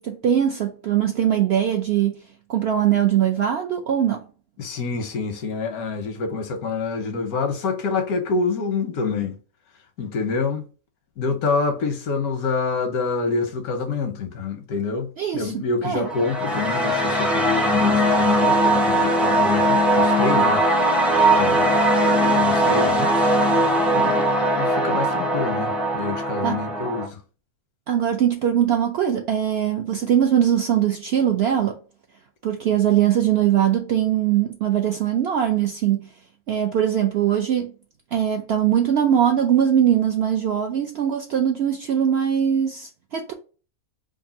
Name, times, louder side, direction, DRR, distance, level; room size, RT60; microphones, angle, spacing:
voice 1, 0.0-2.2 2.5-4.2 15.2-16.1 26.4-26.6 27.9-31.8 32.4-36.1 36.5-37.7 38.1-43.3, right 10 dB, 70° right, 0.6 m, -21 dB
voice 2, 4.6-9.4 10.0-10.7 11.2-20.7 21.3-21.8 22.3-23.3 23.9-27.2, left 4 dB, 90° left, 1.3 m, -27 dB
sound 1, 16.0-27.1, right 1 dB, ahead, 0.3 m, -20 dB
3.4 x 2.5 x 4.0 m
omnidirectional pair, 1.5 m